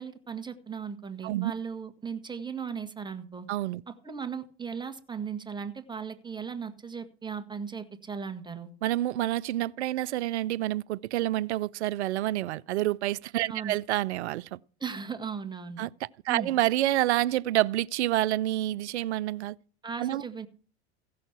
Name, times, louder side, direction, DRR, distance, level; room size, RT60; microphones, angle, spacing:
voice 1, 0.0-3.5 3.9-8.7 13.5-13.8 14.8-15.8 16.3-16.5 19.8-20.5, right 6 dB, 15° right, 1.5 m, -37 dB
voice 2, 3.5-3.8 8.8-14.6 15.8-19.6 20.0-20.2, right 15 dB, 85° right, 0.5 m, -28 dB
16.0 x 6.4 x 5.7 m
hypercardioid pair, 95°, 33 cm